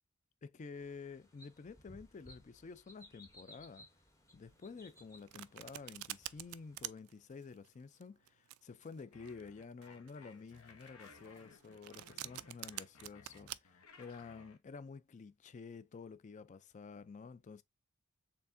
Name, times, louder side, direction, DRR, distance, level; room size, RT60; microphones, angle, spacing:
voice 1, 0.4-3.9 4.3-17.6, left 4 dB, 35° left, 0.3 m, -51 dB
sound 1, 0.7-6.9, left 1 dB, 15° left, 0.8 m, -61 dB
Domestic sounds home sounds, 4.9-13.6, right 15 dB, 80° right, 0.3 m, -47 dB
sound 2, 9.1-14.6, left 4 dB, 75° left, 1.0 m, -60 dB
4.4 x 3.5 x 2.5 m
head